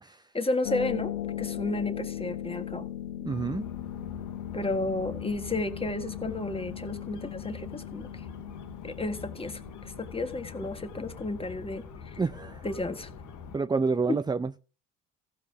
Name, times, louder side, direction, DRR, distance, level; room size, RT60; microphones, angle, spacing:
voice 1, 0.3-2.9 4.5-8.2 8.8-12.2 12.6-13.1 14.1-14.2, left 2 dB, 20° left, 1.6 m, -32 dB
Harp, 0.6-11.2, left 11 dB, 90° left, 1.0 m, -38 dB
voice 2, 3.2-3.7 12.2-12.6 13.5-14.5, right 4 dB, 15° right, 0.5 m, -28 dB
sound 1, 3.3-13.6, left 5 dB, 70° left, 2.1 m, -44 dB
15.0 x 5.1 x 6.0 m
supercardioid pair, 75°, 31 cm